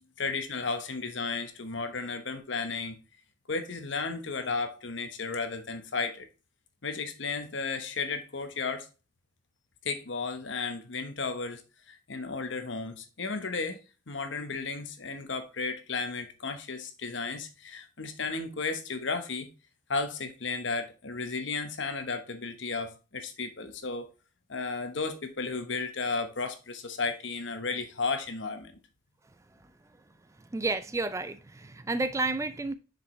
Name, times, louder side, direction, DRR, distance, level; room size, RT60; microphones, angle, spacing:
voice 1, 0.2-3.0 3.5-6.3 6.8-8.9 9.8-11.6 11.9-13.8 14.1-19.5 19.9-24.1 24.5-28.7, left 4 dB, 70° left, 1.1 m, -34 dB
voice 2, 30.5-32.7, right 3 dB, 15° right, 0.4 m, -31 dB
6.5 x 5.0 x 3.1 m
head